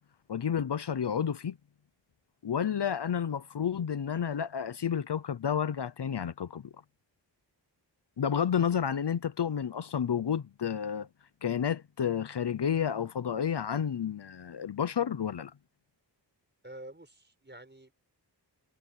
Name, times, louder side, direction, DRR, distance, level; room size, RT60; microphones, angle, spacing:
voice 1, 0.3-1.6 2.4-6.7 8.2-11.1 11.4-15.5, left 8 dB, 65° left, 0.7 m, -30 dB
voice 2, 16.6-17.9, right 1 dB, 25° right, 5.8 m, -48 dB
wide cardioid pair, 70°, 43 cm